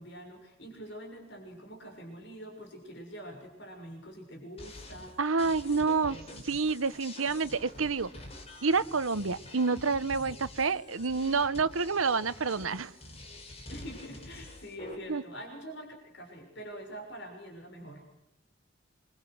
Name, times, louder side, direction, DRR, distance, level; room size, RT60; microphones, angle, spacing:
voice 1, 0.0-5.2 13.7-18.0, equal, 55° left, 3 dB, 6.5 m, -45 dB
sound 1, 4.6-14.9, left 1 dB, 30° left, 5.5 m, -47 dB
voice 2, 5.2-8.1 8.6-12.9 15.1-15.2, right 4 dB, 90° right, 14 dB, 1.1 m, -28 dB
27.5 x 24.5 x 6.3 m, 0.80 s
head